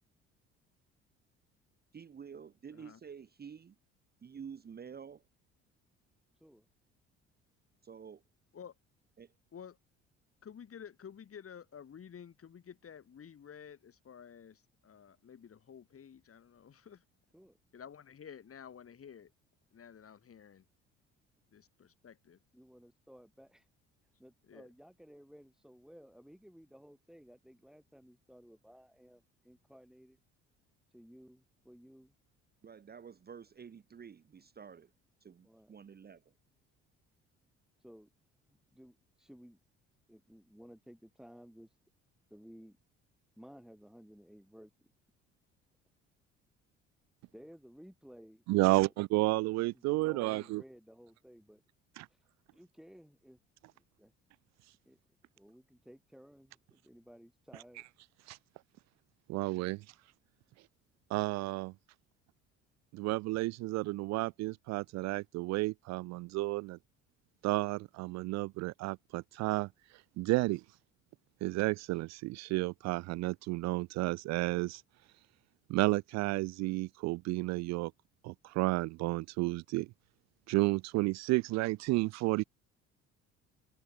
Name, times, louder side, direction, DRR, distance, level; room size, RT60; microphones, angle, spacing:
voice 1, 1.9-3.8 4.2-5.2 7.8-8.2 9.2-9.3 32.6-34.9 35.2-36.3, right 7 dB, 30° right, 1.0 m, -49 dB
voice 2, 10.4-17.0 17.7-19.3 19.7-20.6 21.5-22.4 24.5-24.7, left 8 dB, 45° left, 4.6 m, -51 dB
voice 3, 22.5-23.7 24.2-30.2 30.9-32.1 35.4-35.7 37.8-38.1 38.5-39.6 40.1-41.7 42.3-42.8 43.4-44.9 47.3-48.9 49.7-51.6 52.5-53.4 53.8-54.1 54.8-55.0 55.4-57.8, equal, ahead, 3.9 m, -56 dB
voice 4, 48.5-50.6 52.0-52.1 58.3-58.4 59.3-59.8 61.1-61.7 62.9-66.8 67.4-69.7 70.2-70.6 71.4-74.8 75.7-77.9 78.2-79.9 80.5-82.4, right 21 dB, 55° right, 0.4 m, -31 dB
hypercardioid pair, 55°, 33 cm